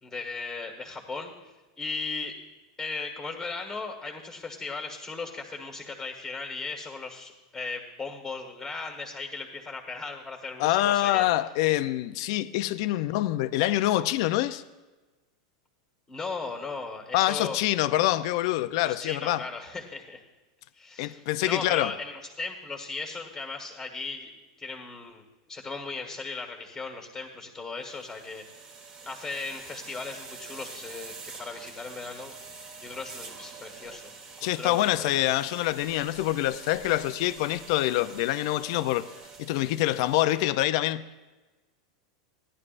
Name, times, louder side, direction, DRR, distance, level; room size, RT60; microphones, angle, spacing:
voice 1, 0.0-2.3 2.8-11.3 14.5-14.6 16.1-17.6 18.8-20.2 20.7-24.3 24.6-25.2 25.5-28.6 29.0-32.3 32.8-34.1 34.4-35.2, left 4 dB, 10° left, 1.4 m, -37 dB
voice 2, 10.6-14.6 17.1-19.4 21.0-21.9 34.4-39.1 39.4-41.2, left 15 dB, 55° left, 0.5 m, -25 dB
sound 1, 27.8-40.6, right 4 dB, 25° right, 1.4 m, -46 dB
16.5 x 11.0 x 2.5 m
supercardioid pair, 145°, 3 cm